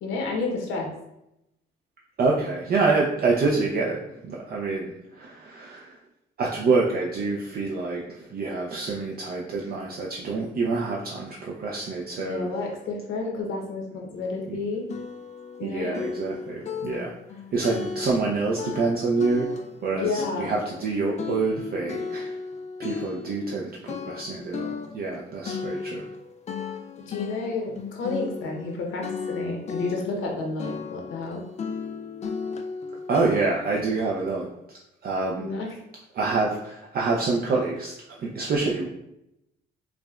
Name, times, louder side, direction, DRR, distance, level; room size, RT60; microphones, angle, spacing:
voice 1, 0.0-0.9 12.2-14.8 15.6-16.0 19.9-20.5 27.1-31.4 35.4-35.7, left 3 dB, 80° left, 1 dB, 0.8 m, -30 dB
voice 2, 2.2-6.0 6.4-12.5 14.5-14.6 15.6-17.1 17.5-19.5 19.8-22.4 22.8-26.0 33.1-35.5 36.1-38.9, right 3 dB, 50° right, -2 dB, 0.5 m, -27 dB
sound 1, 14.2-14.3 14.9-15.7 15.9-18.3 18.6-19.9 20.2-23.6 23.9-28.8 29.0-30.3 30.6-33.9, left 5 dB, 35° left, 0.4 m, -35 dB
4.7 x 2.2 x 2.4 m, 0.84 s
cardioid pair, 90°, 20 cm